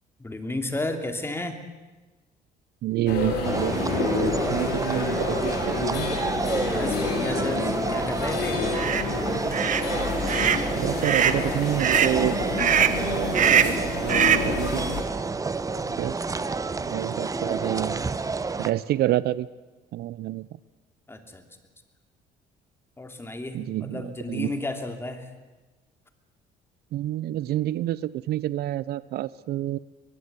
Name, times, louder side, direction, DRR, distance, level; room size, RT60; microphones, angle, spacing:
voice 1, 0.2-1.6 6.6-8.6 16.6-16.8 21.1-21.4 23.0-25.3, left 2 dB, 15° left, 6 dB, 3.1 m, -33 dB
voice 2, 2.8-6.1 10.8-12.8 13.1-14.8 15.9-16.2 16.9-18.0 18.6-19.5 19.9-20.5 23.5-24.5 26.9-29.8, right 14 dB, 70° right, 19 dB, 0.7 m, -28 dB
sound 1, 3.1-15.0, left 5 dB, 75° left, 5.5 m, -29 dB
sound 2, 3.4-18.7, right 4 dB, 20° right, 1.0 m, -29 dB
sound 3, 8.7-9.0 9.5-9.9 10.3-10.6 11.0-11.4 11.8-12.2 12.6-13.0 13.3-13.8 14.1-14.5, right 9 dB, 50° right, 1.4 m, -22 dB
23.5 x 20.5 x 8.3 m, 1.2 s
cardioid pair, 110°, 17 cm